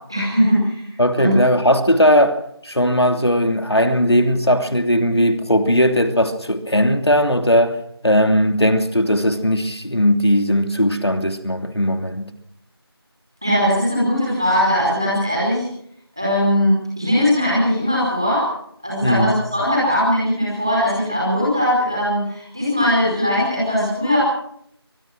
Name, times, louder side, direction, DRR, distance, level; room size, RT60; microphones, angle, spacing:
voice 1, 0.1-0.8 1.2-1.3 13.4-15.6 16.1-18.5 18.8-24.2, equal, 10° right, 5.0 m, -19 dB
voice 2, 1.0-12.3 19.0-19.4, equal, 75° left, 2.9 m, -18 dB
24.5 x 20.0 x 6.2 m
figure-of-eight pair, 180°, 14 cm